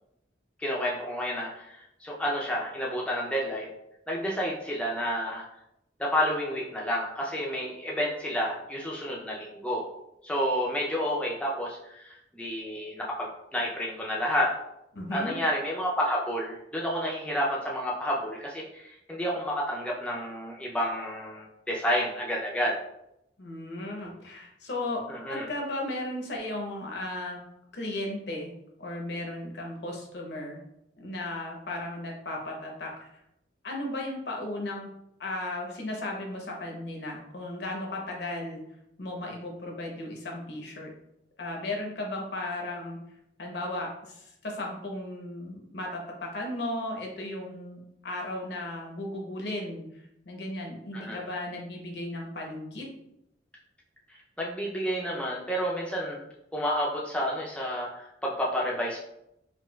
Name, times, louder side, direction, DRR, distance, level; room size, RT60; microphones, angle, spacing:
voice 1, 0.6-3.7 4.1-5.5 6.0-9.9 10.2-14.5 15.1-22.8 25.1-25.5 50.9-51.2 54.4-56.2 56.5-59.0, equal, 5° left, -4 dB, 0.4 m, -30 dB
voice 2, 14.9-15.4 23.4-25.0 25.3-27.4 27.7-28.5 28.8-30.6 31.0-33.1 33.6-34.9 35.2-38.6 39.0-40.9 41.4-43.0 43.4-49.8 50.3-52.9, left 1 dB, 65° left, 0 dB, 0.7 m, -35 dB
4.2 x 2.3 x 2.2 m, 0.80 s
head